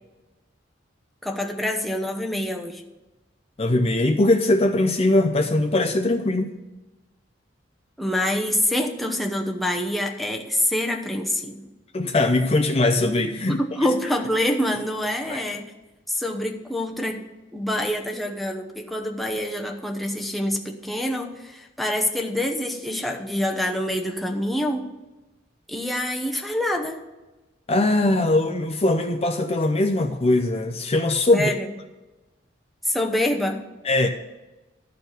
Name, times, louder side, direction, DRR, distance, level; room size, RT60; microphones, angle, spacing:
voice 1, 1.2-2.8 8.0-11.7 13.5-15.7 16.1-17.2 17.5-24.9 25.7-27.0 31.3-31.7 32.8-33.6, left 1 dB, ahead, 1 dB, 0.8 m, -26 dB
voice 2, 3.6-6.5 11.9-13.6 15.3-15.4 27.7-31.5 33.8-34.1, left 2 dB, 35° left, 5 dB, 0.6 m, -21 dB
13.0 x 4.5 x 8.0 m, 1.1 s
head